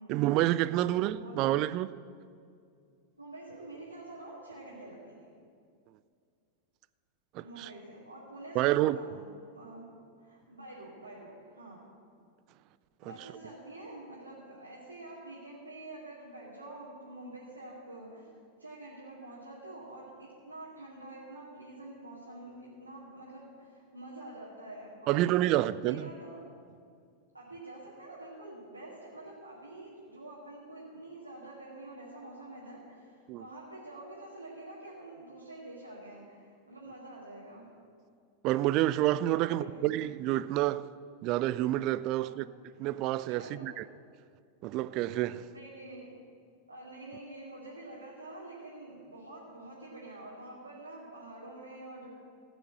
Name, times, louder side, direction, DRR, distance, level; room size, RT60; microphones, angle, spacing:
voice 1, 0.1-1.9 7.3-7.7 8.6-9.0 13.0-13.1 25.1-26.1 33.3-33.4 38.4-40.9 41.2-42.5 42.8-43.8 44.6-45.5, right 15 dB, 40° right, 0.3 m, -28 dB
voice 2, 0.8-1.4 3.2-5.3 7.4-9.2 9.5-9.9 10.2-11.8 13.0-18.3 18.6-25.5 25.8-26.4 27.3-37.6 39.3-39.8 42.2-42.4 43.3-43.7 45.5-46.1 46.7-52.1, right 2 dB, 80° right, 2.5 m, -47 dB
16.0 x 6.2 x 7.7 m
figure-of-eight pair, 90°, 0 cm